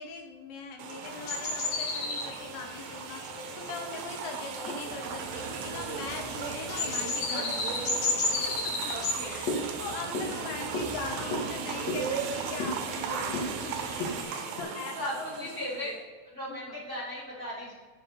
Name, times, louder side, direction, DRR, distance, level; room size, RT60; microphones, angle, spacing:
voice 1, 0.0-3.2 3.6-8.0 8.5-8.7 9.2-13.8 14.1-15.5 15.8-16.0 16.5-16.8, left 5 dB, 75° left, 3 dB, 2.9 m, -41 dB
sound 1, 0.8-15.9, right 7 dB, 85° right, 3.4 m, -38 dB
sound 2, 1.1-14.6, left 2 dB, 55° left, 2.1 m, -34 dB
Male speech man speaking / Vehicle / Engine starting, 2.6-14.2, right 4 dB, 65° right, 2.7 m, -43 dB
voice 2, 8.8-9.8 14.5-15.9 16.3-17.7, equal, 20° right, -8 dB, 2.4 m, -38 dB
8.1 x 7.0 x 6.6 m, 1.5 s
omnidirectional pair, 5.5 m